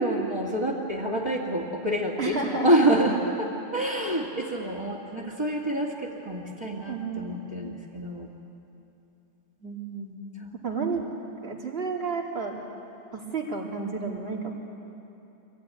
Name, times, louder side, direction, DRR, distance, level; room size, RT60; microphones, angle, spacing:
voice 1, 0.0-8.3 10.4-10.5, right 1 dB, 25° right, -6 dB, 2.0 m, -27 dB
voice 2, 2.2-2.8 6.9-7.6 9.6-10.2 10.6-11.0 11.4-12.5 13.1-14.5, right 4 dB, 60° right, -1 dB, 2.9 m, -31 dB
24.0 x 16.5 x 9.6 m, 2.9 s
omnidirectional pair, 1.1 m